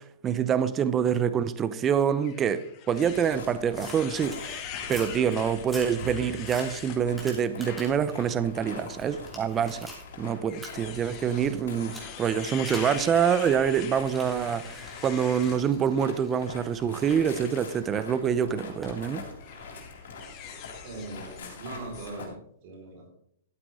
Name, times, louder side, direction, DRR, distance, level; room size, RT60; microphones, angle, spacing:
voice 1, 0.0-4.6 4.9-9.9 10.2-19.2, right 8 dB, 20° right, 0.6 m, -26 dB
sound 1, 2.2-7.0 7.5-7.8 8.3-8.4 9.5-15.6 17.1-17.7 18.7-18.9 19.4-21.6 21.9-22.1, left 9 dB, 35° left, 1.7 m, -43 dB
sound 2, 2.9-22.3, left 4 dB, 75° left, 3.6 m, -44 dB
sound 3, 3.7-4.4 4.8-5.2 5.6-8.1 8.5-10.1 10.6-10.7 11.9-12.1 12.7-13.0 13.9-17.8 18.8-19.0, equal, 5° right, 3.0 m, -45 dB
voice 2, 20.8-22.3 22.6-23.1, right 2 dB, 50° right, 4.4 m, -40 dB
12.5 x 8.7 x 3.7 m
hypercardioid pair, 135°, 0 cm